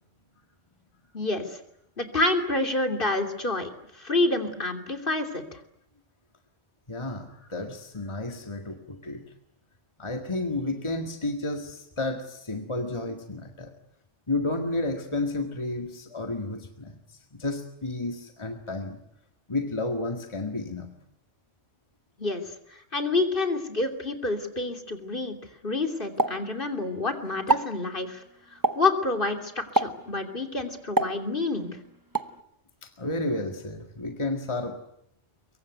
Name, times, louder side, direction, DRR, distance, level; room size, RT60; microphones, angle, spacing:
voice 1, 1.1-1.5 2.0-3.7 4.0-5.4 22.2-22.4 22.9-25.4 25.6-28.2 28.7-31.7, left 2 dB, 45° left, 5 dB, 3.2 m, -28 dB
voice 2, 6.9-9.2 10.0-13.7 14.3-19.0 19.5-21.0 32.8-34.8, left 2 dB, 25° left, 4 dB, 2.0 m, -31 dB
Explosion, 26.2-27.1 27.4-27.8 28.6-29.0 29.8-30.1 31.0-31.7 32.2-32.4, right 2 dB, 20° right, 1.0 m, -27 dB
24.0 x 23.5 x 9.3 m, 0.74 s
omnidirectional pair, 1.2 m